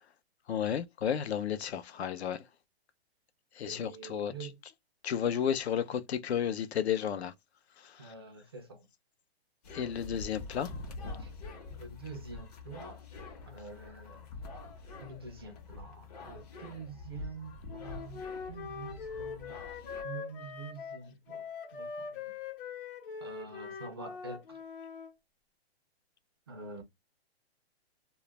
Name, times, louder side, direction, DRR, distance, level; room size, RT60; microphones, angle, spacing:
voice 1, 0.5-2.5 3.5-4.5 5.0-7.3 7.8-8.1 9.7-10.7, left 8 dB, 80° left, 0.6 m, -33 dB
voice 2, 3.6-4.6 8.0-8.9 11.2-11.3 11.8-13.0 13.4-14.3 15.0-19.6 20.0-22.4 23.2-24.6 26.5-26.8, right 4 dB, 25° right, 0.3 m, -46 dB
sound 1, 9.6-20.0, left 3 dB, 40° left, 0.8 m, -46 dB
Wind instrument woodwind instrument, 17.7-25.1, left 5 dB, 55° left, 0.9 m, -42 dB
2.3 x 2.0 x 2.9 m
hypercardioid pair, 160°, 32 cm